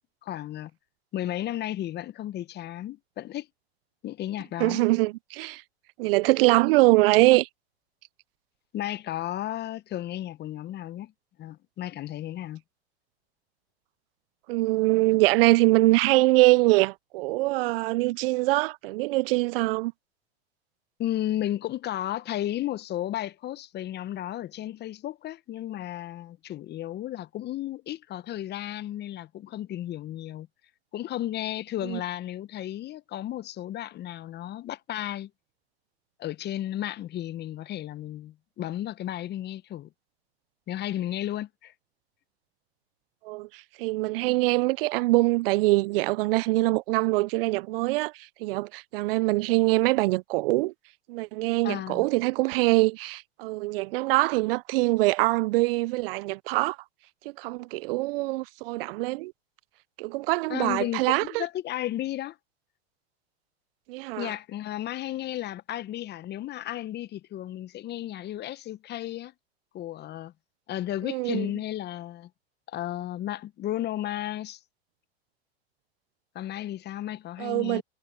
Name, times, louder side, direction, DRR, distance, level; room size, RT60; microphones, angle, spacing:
voice 1, 0.2-0.7 1.1-3.5 4.0-4.8 8.7-11.1 11.4-12.6 21.0-30.5 30.9-35.3 36.2-39.9 40.7-41.7 51.6-52.1 60.5-62.4 64.2-69.3 69.7-70.3 70.7-72.3 72.7-74.6 76.3-77.8, left 13 dB, 30° left, 0.9 m, -33 dB
voice 2, 4.6-5.6 6.0-7.5 14.5-19.9 31.8-32.0 43.2-50.7 51.1-56.8 57.4-59.3 60.0-61.4 63.9-64.3 71.0-71.5 77.4-77.8, right 21 dB, 60° right, 0.5 m, -23 dB
hypercardioid pair, 105°, 32 cm